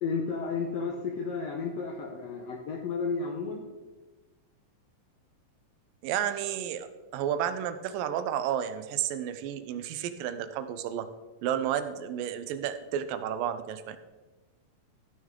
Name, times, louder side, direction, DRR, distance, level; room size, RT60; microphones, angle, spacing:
voice 1, 0.0-3.6, left 4 dB, 75° left, 1 dB, 1.5 m, -32 dB
voice 2, 6.0-6.9 7.1-11.1 11.4-14.0, right 10 dB, 85° right, 10 dB, 2.3 m, -31 dB
13.5 x 6.3 x 3.7 m, 1.2 s
omnidirectional pair, 3.9 m